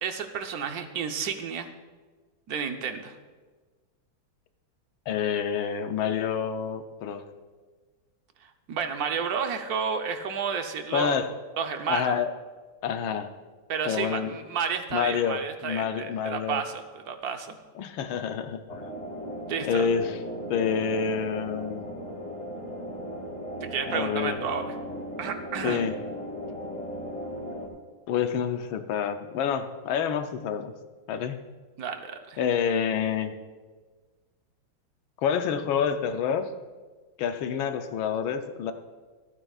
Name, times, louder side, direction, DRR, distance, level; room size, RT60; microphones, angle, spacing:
voice 1, 0.0-1.7 2.5-3.2 8.4-11.2 11.6-12.2 13.7-17.6 19.5-19.9 23.6-24.8 25.2-25.8 31.8-32.4, right 6 dB, 60° right, 6 dB, 1.1 m, -31 dB
voice 2, 5.1-7.2 10.9-11.3 11.9-12.3 12.8-13.3 13.9-14.4 14.9-16.6 17.8-18.8 19.6-20.2 20.5-21.9 23.9-24.4 25.6-26.0 28.1-30.7 31.1-31.4 32.4-33.4 35.2-36.5 37.2-38.7, left 7 dB, 80° left, 8 dB, 1.5 m, -28 dB
sound 1, 18.7-27.7, equal, 25° left, 1.2 m, -37 dB
26.5 x 8.9 x 2.4 m, 1.4 s
omnidirectional pair, 2.2 m